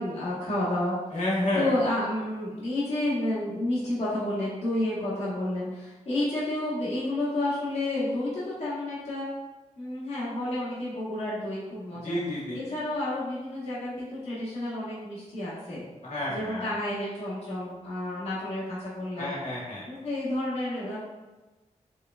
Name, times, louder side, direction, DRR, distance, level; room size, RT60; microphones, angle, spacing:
voice 1, 0.0-0.9 1.5-9.2 9.8-12.2 12.5-15.8 16.3-19.3 19.9-21.0, left 1 dB, 55° left, -10 dB, 1.1 m, -30 dB
voice 2, 1.1-1.7 12.0-12.6 16.0-16.7 19.2-19.8, left 1 dB, 70° left, -7 dB, 1.4 m, -30 dB
4.8 x 3.2 x 2.3 m, 1.2 s
wide cardioid pair, 120°, 13 cm